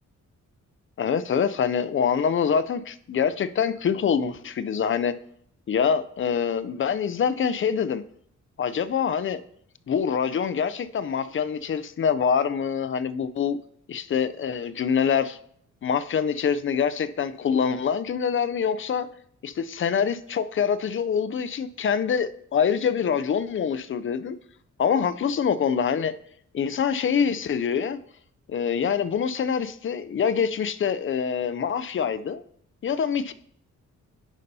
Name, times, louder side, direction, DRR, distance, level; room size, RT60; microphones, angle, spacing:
voice 1, 1.0-5.1 5.7-8.0 8.6-9.4 9.9-13.6 13.9-15.4 15.8-19.1 19.4-24.4 24.8-26.1 26.5-28.0 28.5-32.4 32.8-33.3, left 7 dB, 40° left, 13 dB, 0.4 m, -25 dB
9.7 x 5.4 x 2.7 m, 0.65 s
cardioid pair, 85°, 31 cm